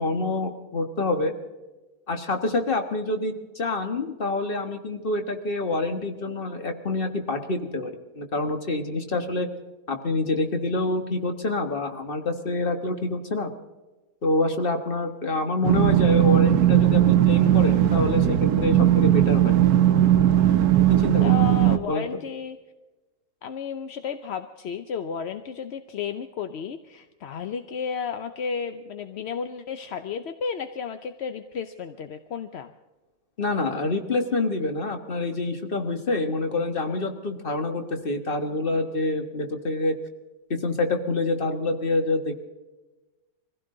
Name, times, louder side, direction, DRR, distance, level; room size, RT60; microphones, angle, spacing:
voice 1, 0.0-1.3 2.1-9.5 9.9-13.5 14.2-19.5 20.9-21.3 21.9-22.1 33.4-40.0 40.5-42.4, left 2 dB, 35° left, 6 dB, 1.6 m, -27 dB
sound 1, 15.6-21.8, right 12 dB, 70° right, 1.4 m, -18 dB
voice 2, 21.2-22.6 23.4-32.7, left 6 dB, 55° left, 8 dB, 0.8 m, -33 dB
23.5 x 15.5 x 3.8 m, 1.1 s
omnidirectional pair, 1.7 m